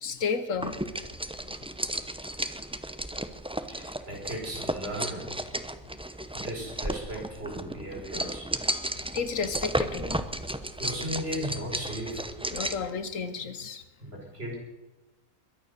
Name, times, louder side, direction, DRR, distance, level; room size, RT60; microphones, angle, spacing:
voice 1, 0.0-1.1 1.4-1.5 2.6-2.7 7.4-7.5 9.1-10.3 12.5-13.8, left 5 dB, 70° left, 11 dB, 1.4 m, -32 dB
sound 1, 0.6-12.9, right 1 dB, 5° right, 0.4 m, -34 dB
voice 2, 3.7-5.3 6.3-8.5 10.7-12.3 14.0-14.6, equal, 45° right, -1 dB, 5.3 m, -36 dB
22.0 x 9.8 x 6.6 m, 1.1 s
omnidirectional pair, 1.4 m